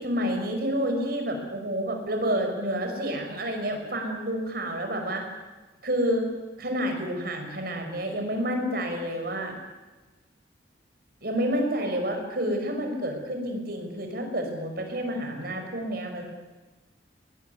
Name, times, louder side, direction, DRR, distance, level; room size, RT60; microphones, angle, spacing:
voice 1, 0.0-5.2 5.8-6.2 6.6-9.5 11.2-16.2, equal, 55° right, 4 dB, 5.8 m, -29 dB
22.0 x 20.5 x 9.5 m, 1.2 s
head